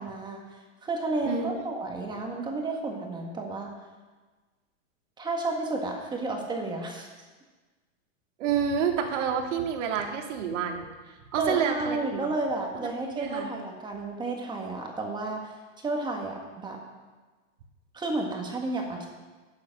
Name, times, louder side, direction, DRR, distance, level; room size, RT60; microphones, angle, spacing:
voice 1, 0.0-3.7 5.2-7.1 11.4-16.8 17.9-19.1, right 2 dB, 10° right, 1 dB, 1.6 m, -32 dB
voice 2, 1.3-1.6 8.4-10.9 11.3-12.3 12.8-13.5, right 7 dB, 65° right, 3 dB, 2.1 m, -29 dB
12.5 x 8.6 x 6.5 m, 1.3 s
supercardioid pair, 150°, 39 cm